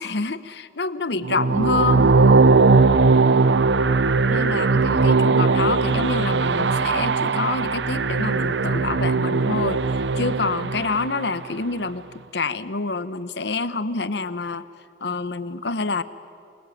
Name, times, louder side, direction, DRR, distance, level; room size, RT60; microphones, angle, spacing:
voice 1, 0.0-2.2 4.3-12.1 12.3-14.7 15.0-16.0, left 3 dB, 75° left, 15 dB, 1.0 m, -27 dB
sound 1, 1.2-11.4, right 4 dB, 80° right, 0.7 m, -19 dB
27.5 x 21.5 x 9.2 m, 2.4 s
head